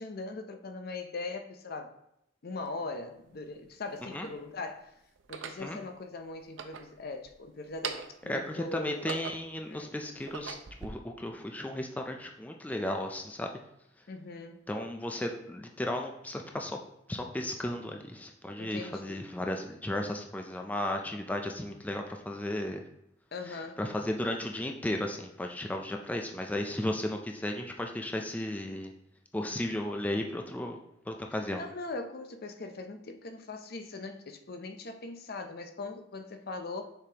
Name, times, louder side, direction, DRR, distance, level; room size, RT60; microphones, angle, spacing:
voice 1, 0.0-1.9 2.4-4.9 5.3-9.1 9.7-9.9 14.1-14.6 18.6-19.2 23.3-23.8 31.6-36.8, left 3 dB, 55° left, 7 dB, 0.6 m, -40 dB
sound 1, 2.7-2.8 3.6-4.4 5.2-5.7 6.4-7.3 7.7-8.3 8.8-9.6 10.1-10.9, right 6 dB, 75° right, 0.5 m, -41 dB
voice 2, 8.3-13.5 14.7-16.8 17.1-22.8 23.5-28.9 29.3-30.8 31.1-31.6, left 1 dB, 10° left, 3 dB, 0.4 m, -34 dB
6.7 x 5.0 x 2.9 m, 0.79 s
head